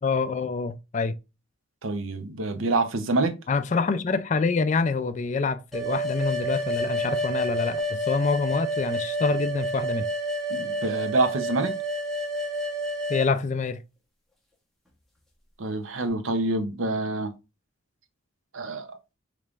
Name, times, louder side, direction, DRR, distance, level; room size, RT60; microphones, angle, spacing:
voice 1, 0.0-1.2 3.5-10.1 13.1-13.8, left 4 dB, 35° left, 0.3 m, -26 dB
voice 2, 1.8-3.4 10.5-11.7 15.6-17.3 18.5-18.9, right 2 dB, 90° right, 0.7 m, -26 dB
sound 1, 5.7-13.3, right 1 dB, ahead, 1.0 m, -29 dB
5.0 x 3.2 x 2.4 m
head